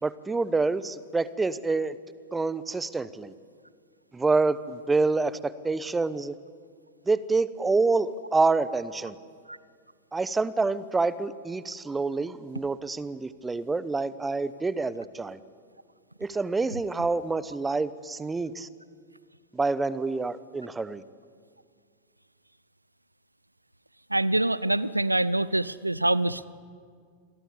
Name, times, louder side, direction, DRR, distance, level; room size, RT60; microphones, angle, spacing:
voice 1, 0.0-2.0 2.3-3.3 4.1-6.3 7.1-9.1 10.1-15.4 16.2-18.7 19.5-21.0, right 3 dB, 10° right, 17 dB, 0.9 m, -27 dB
voice 2, 24.1-26.5, right 1 dB, 85° right, 19 dB, 0.6 m, -25 dB
27.5 x 22.0 x 8.6 m, 2.1 s
figure-of-eight pair, 90°, 0 cm